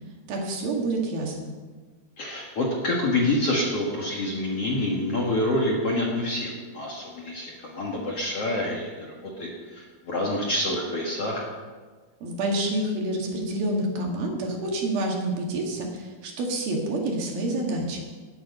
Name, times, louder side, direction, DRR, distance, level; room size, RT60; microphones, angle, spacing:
voice 1, 0.3-1.5 12.2-18.0, right 1 dB, 65° right, 0 dB, 3.8 m, -28 dB
voice 2, 2.2-11.4, left 1 dB, 50° left, -2 dB, 2.1 m, -27 dB
19.0 x 9.1 x 5.5 m, 1.4 s
omnidirectional pair, 4.6 m